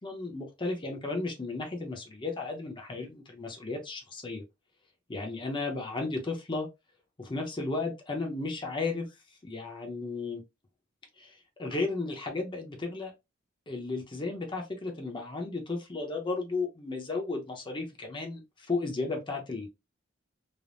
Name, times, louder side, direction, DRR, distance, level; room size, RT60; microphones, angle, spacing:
voice 1, 0.0-4.4 5.1-6.7 7.2-9.1 9.4-10.4 11.2-13.1 13.7-19.7, left 3 dB, 25° left, 0.6 m, -34 dB
3.3 x 2.0 x 2.5 m
head